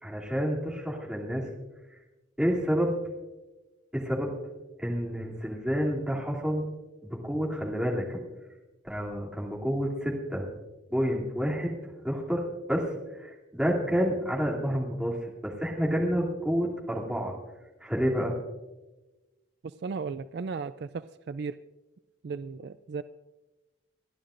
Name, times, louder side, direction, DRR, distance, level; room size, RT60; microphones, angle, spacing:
voice 1, 0.0-1.5 2.4-2.9 3.9-4.3 4.8-6.6 7.2-8.2 8.8-10.4 10.9-11.7 12.0-12.4 12.7-12.9 13.2-17.3 17.8-18.3, equal, 5° right, -4 dB, 2.7 m, -29 dB
voice 2, 19.6-21.6 22.2-23.0, right 5 dB, 55° right, 13 dB, 0.3 m, -36 dB
29.0 x 11.0 x 2.5 m, 1.1 s
head